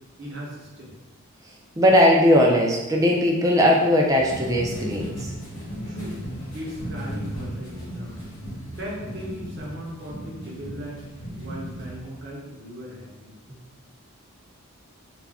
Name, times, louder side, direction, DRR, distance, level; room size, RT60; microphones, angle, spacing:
voice 1, 0.2-0.9 5.9-6.2 6.5-8.2 8.6-11.1 11.4-13.3, equal, 50° right, -4 dB, 0.7 m, -38 dB
voice 2, 1.8-5.3, left 1 dB, 15° right, -1 dB, 0.3 m, -19 dB
sound 1, 4.0-9.4, equal, 50° left, 1.1 m, -44 dB
sound 2, 4.3-12.1, equal, 80° left, 0.9 m, -36 dB
2.4 x 2.1 x 3.4 m, 1.1 s
head